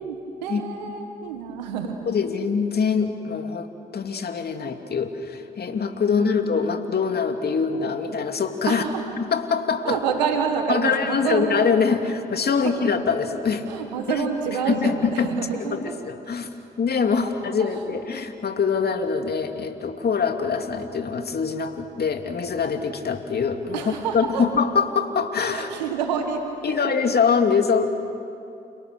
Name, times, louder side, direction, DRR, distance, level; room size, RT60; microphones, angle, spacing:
voice 1, 0.0-2.1 6.1-6.3 8.7-9.0 9.8-11.5 12.6-13.0 13.7-15.8 17.6-18.0 23.7-24.5 25.5-26.5, right 6 dB, 90° right, 5 dB, 1.6 m, -28 dB
voice 2, 2.1-8.8 9.2-10.0 10.7-13.6 14.2-14.3 14.7-15.3 15.6-25.7 26.6-27.9, left 5 dB, 50° left, 5 dB, 2.8 m, -24 dB
29.5 x 29.0 x 6.7 m, 2.5 s
hypercardioid pair, 45°, 21 cm